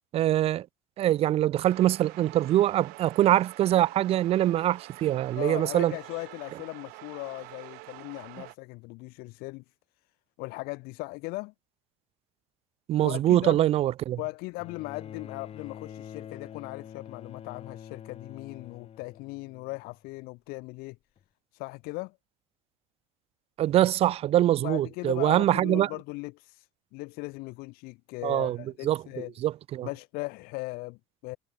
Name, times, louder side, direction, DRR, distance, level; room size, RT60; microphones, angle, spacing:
voice 1, 0.1-0.7 1.0-5.9 12.9-14.2 23.6-25.9 28.2-28.6 28.8-29.0 29.4-29.9, right 13 dB, 40° right, 0.3 m, -24 dB
sound 1, 1.6-8.5, right 27 dB, 70° right, 0.8 m, -47 dB
voice 2, 5.3-9.6 10.4-11.5 13.0-13.6 14.2-21.0 21.5-22.2 24.6-29.3 29.8-31.4, left 24 dB, 70° left, 2.2 m, -38 dB
Bowed string instrument, 14.6-20.0 21.2-21.3, left 9 dB, 40° left, 2.0 m, -45 dB
supercardioid pair, 105°, 16 cm